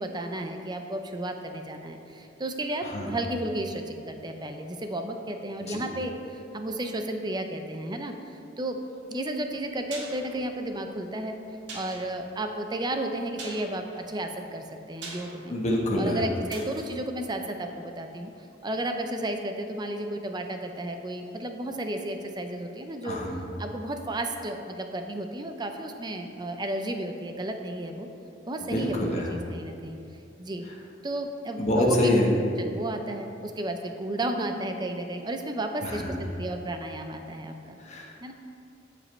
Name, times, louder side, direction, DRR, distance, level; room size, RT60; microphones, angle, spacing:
voice 1, 0.0-8.1 8.6-8.8 9.1-11.4 11.7-15.5 15.9-18.3 18.6-23.2 23.6-28.1 28.5-30.0 30.4-30.6 31.0-32.1 32.6-37.8 38.2-38.3, right 1 dB, 25° right, 5 dB, 0.6 m, -33 dB
sound 1, 9.5-18.4 18.6-18.7, right 2 dB, 75° right, 1.8 m, -46 dB
voice 2, 15.5-16.2 23.0-23.4 28.6-29.3 31.6-32.3 35.8-36.2 37.8-38.1, left 1 dB, 35° left, -2 dB, 1.3 m, -26 dB
14.0 x 5.3 x 3.2 m, 2.6 s
head